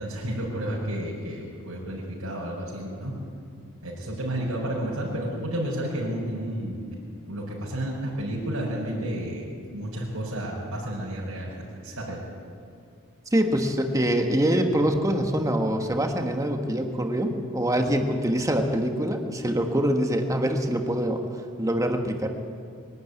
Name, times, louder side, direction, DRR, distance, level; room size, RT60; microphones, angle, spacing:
voice 1, 0.0-3.1 3.8-6.8 7.3-11.5 11.8-12.2, right 1 dB, 90° right, -7 dB, 5.1 m, -31 dB
voice 2, 13.3-22.3, equal, 15° right, 4 dB, 1.6 m, -24 dB
22.5 x 12.0 x 9.6 m, 2.2 s
head